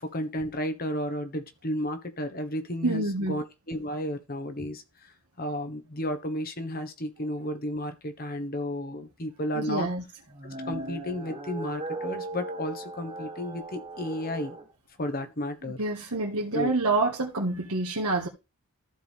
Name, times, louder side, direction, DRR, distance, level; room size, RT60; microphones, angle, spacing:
voice 1, 0.0-9.9 10.6-14.6 15.0-15.8 16.5-16.7, equal, 40° left, 1.3 m, -33 dB
voice 2, 2.8-3.4 9.5-10.0 15.8-18.3, right 2 dB, 85° right, 1.8 m, -27 dB
sound 1, 10.3-14.7, right 2 dB, 30° right, 1.8 m, -38 dB
14.0 x 4.8 x 3.5 m
head